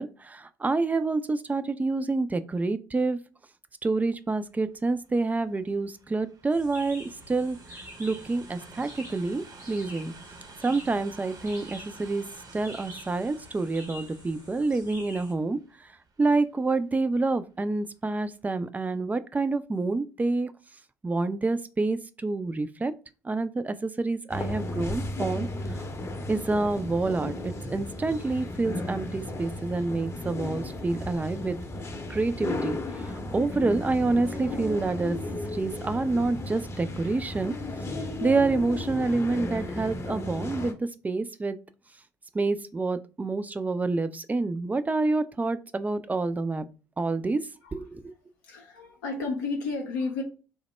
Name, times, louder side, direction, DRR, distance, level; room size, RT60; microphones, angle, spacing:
voice 1, 0.0-3.2 3.8-10.1 10.6-12.2 12.5-15.9 16.2-20.5 21.0-22.9 23.2-25.8 26.3-31.6 32.1-35.2 35.5-37.5 38.2-41.6 42.3-46.7 47.0-47.4 47.7-48.1, right 3 dB, 15° right, 0.3 m, -28 dB
Train, 4.3-17.5 18.2-18.3, right 3 dB, 40° right, 0.7 m, -51 dB
sound 1, 6.5-15.3, equal, 90° right, 0.9 m, -47 dB
sound 2, 24.3-40.7, left 2 dB, 30° left, 0.6 m, -34 dB
voice 2, 48.4-50.2, left 3 dB, 75° left, 0.5 m, -32 dB
3.1 x 2.0 x 3.2 m
figure-of-eight pair, 50°, 10 cm